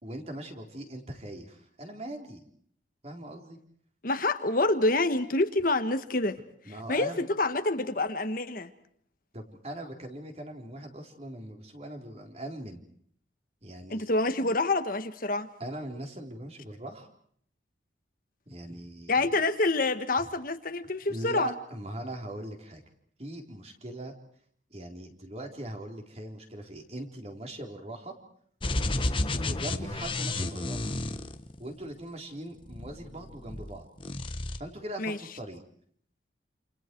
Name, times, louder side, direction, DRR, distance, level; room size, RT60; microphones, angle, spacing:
voice 1, 0.0-2.4 3.0-3.6 6.7-7.2 9.3-12.8 13.6-14.1 15.6-17.1 18.5-19.3 21.1-22.8 23.2-24.1 24.7-28.1 29.3-30.9 31.6-33.9 34.6-35.6, right 1 dB, 35° right, 3 dB, 4.0 m, -40 dB
voice 2, 4.0-6.4 6.9-7.1 7.4-8.7 13.9-15.5 19.1-21.5 35.0-35.2, left 2 dB, 50° left, 8 dB, 1.5 m, -27 dB
sound 1, 28.6-31.9 32.6-33.7 34.0-34.6, left 2 dB, 25° left, 1.3 m, -32 dB
28.5 x 28.5 x 4.7 m, 0.64 s
head